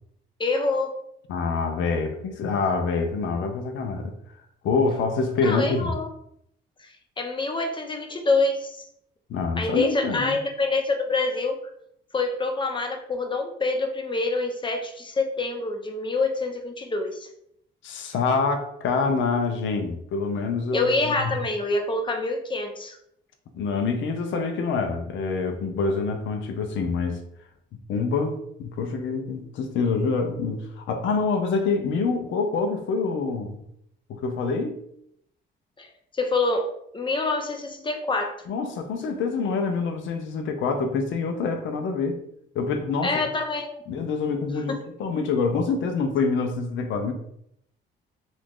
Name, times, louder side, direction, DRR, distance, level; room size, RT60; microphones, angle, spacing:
voice 1, 0.4-0.9 5.4-6.1 7.2-8.8 9.6-11.6 12.1-17.3 20.7-23.0 35.8-35.9 36.1-36.7 36.9-38.4 43.0-43.7, left 3 dB, 25° left, 4 dB, 0.6 m, -26 dB
voice 2, 1.3-4.1 4.6-5.9 9.3-10.4 17.8-21.3 23.5-27.2 27.9-33.6 34.1-34.8 38.5-42.2 42.5-43.3 43.9-47.1, left 4 dB, 70° left, 5 dB, 0.6 m, -26 dB
2.9 x 2.5 x 3.6 m, 0.72 s
cardioid pair, 90°, 20 cm